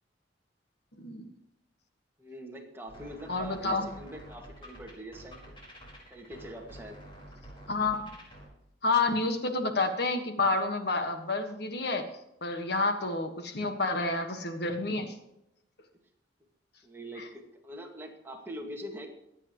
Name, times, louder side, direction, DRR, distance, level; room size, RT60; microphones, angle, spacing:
voice 1, 2.2-5.4 6.1-7.0 16.8-19.1, equal, 15° right, 1 dB, 2.1 m, -43 dB
sound 1, 2.9-8.5, right 1 dB, 30° left, 4.8 m, -49 dB
voice 2, 3.3-3.9 7.7-8.0 8.8-12.1 12.4-15.1 17.2-17.3, left 3 dB, 65° left, 6 dB, 1.6 m, -29 dB
23.5 x 8.9 x 3.1 m, 0.84 s
head